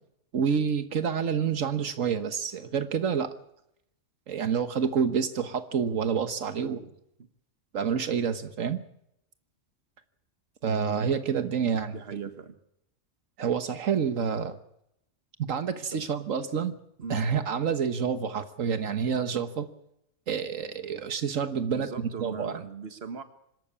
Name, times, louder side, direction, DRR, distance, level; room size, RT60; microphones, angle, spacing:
voice 1, 0.3-3.3 4.3-6.8 7.7-8.8 10.6-12.3 13.4-14.6 15.4-16.7 17.1-19.7 20.3-22.6, right 7 dB, 85° right, 10 dB, 1.6 m, -28 dB
voice 2, 6.6-6.9 7.2-7.3 11.9-12.5 15.9-16.0 17.0-17.2 21.7-23.2, right 5 dB, 50° right, 10 dB, 1.7 m, -39 dB
25.5 x 13.0 x 8.5 m, 0.77 s
omnidirectional pair, 1.3 m